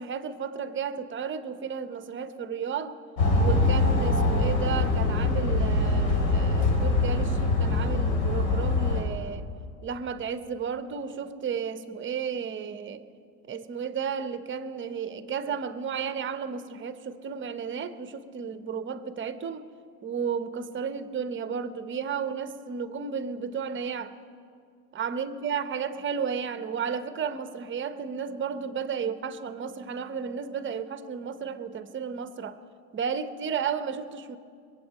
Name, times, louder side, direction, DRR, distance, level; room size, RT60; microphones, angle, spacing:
voice 1, 0.0-3.0 3.4-9.5 9.8-13.0 13.5-19.7 20.0-24.1 24.9-32.6 32.9-34.4, right 6 dB, 30° right, 0.9 m, -33 dB
sound 1, 3.2-9.0, left 2 dB, 75° left, 3.3 m, -23 dB
21.5 x 8.4 x 7.6 m
hypercardioid pair, 90°, 42 cm